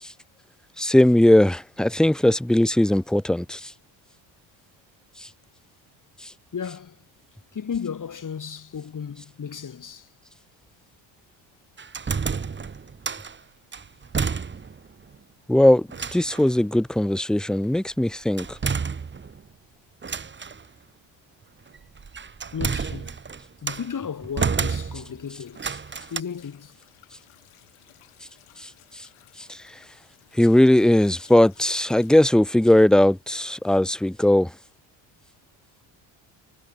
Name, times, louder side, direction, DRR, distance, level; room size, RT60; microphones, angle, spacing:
voice 1, 0.8-3.7 5.2-5.3 6.2-6.3 15.5-18.6 28.6-29.1 29.4-29.8 30.3-34.5, left 1 dB, ahead, 0.5 m, -19 dB
voice 2, 6.5-7.0 7.5-10.1 22.5-23.2 23.6-25.7 26.1-26.8, left 7 dB, 40° left, 6.2 m, -34 dB
sound 1, 11.8-13.4 13.7-14.9 15.1-15.2 15.9-16.5 18.4-19.5 20.0-20.6 21.7-23.9 24.4-25.2 25.6-26.2, right 5 dB, 20° right, 1.3 m, -30 dB
sound 2, 25.0-32.3, left 16 dB, 80° left, 7.4 m, -57 dB
cardioid pair, 105°, 49 cm